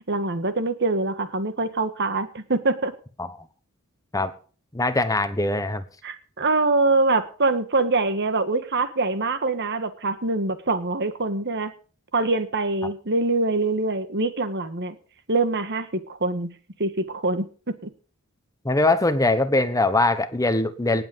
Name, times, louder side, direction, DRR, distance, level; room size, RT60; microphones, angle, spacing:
voice 1, 0.1-2.9 6.0-11.7 12.1-14.9 15.3-16.5 16.8-17.9, right 3 dB, 55° right, 11 dB, 1.7 m, -24 dB
voice 2, 4.7-5.8 18.6-21.0, left 2 dB, 15° left, 11 dB, 1.1 m, -22 dB
19.0 x 7.9 x 5.4 m, 0.39 s
head